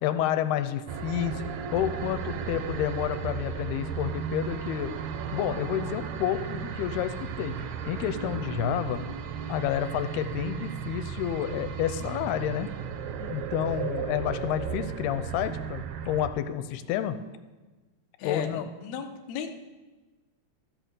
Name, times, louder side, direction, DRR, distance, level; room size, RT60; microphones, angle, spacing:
voice 1, 0.0-4.9 5.3-7.6 7.9-9.0 9.5-12.7 13.2-17.2 18.2-18.6, left 10 dB, 85° left, 10 dB, 2.7 m, -30 dB
sound 1, 0.9-16.3, right 7 dB, 85° right, 1.7 m, -35 dB
voice 2, 18.2-19.6, left 7 dB, 65° left, 3 dB, 1.9 m, -35 dB
13.5 x 9.2 x 6.8 m, 1.2 s
omnidirectional pair, 4.5 m